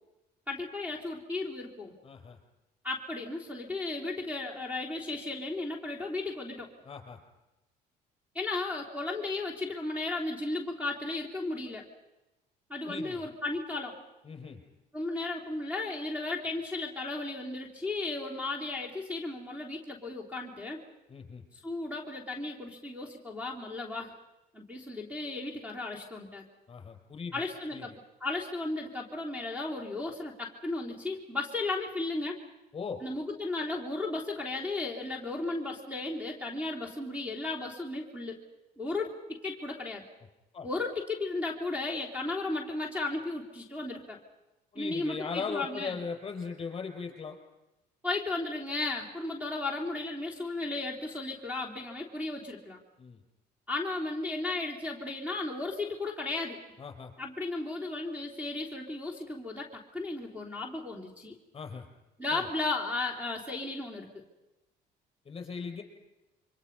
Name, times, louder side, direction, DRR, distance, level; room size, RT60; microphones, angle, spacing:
voice 1, 0.5-2.0 2.8-6.7 8.3-11.9 12.7-14.0 14.9-20.8 21.5-24.1 24.5-26.4 27.3-27.9 28.2-32.4 33.0-38.4 38.8-40.0 40.6-44.2 44.7-46.0 48.0-52.8 53.7-56.6 57.2-61.3 62.2-64.2, left 2 dB, 10° right, 1 dB, 3.4 m, -35 dB
voice 2, 2.0-2.4 6.8-7.2 12.8-13.3 14.2-14.6 21.1-21.4 26.7-27.4 27.7-27.8 32.7-33.0 40.5-40.7 44.7-47.3 53.0-53.2 56.8-57.1 61.5-61.8 62.3-62.5 65.2-65.8, left 5 dB, 30° left, 3 dB, 6.1 m, -39 dB
28.0 x 25.0 x 5.5 m, 1.0 s
cardioid pair, 110°, 17 cm